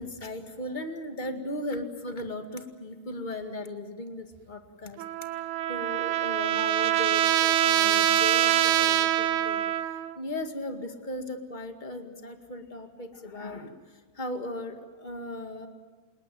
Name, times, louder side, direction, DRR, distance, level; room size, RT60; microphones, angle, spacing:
voice 1, 0.0-5.0 5.4-9.6 10.1-15.7, left 1 dB, 25° left, 6 dB, 1.0 m, -37 dB
Trumpet, 5.0-10.1, right 12 dB, 90° right, 2.9 m, -24 dB
28.0 x 20.0 x 7.7 m, 1.5 s
omnidirectional pair, 4.3 m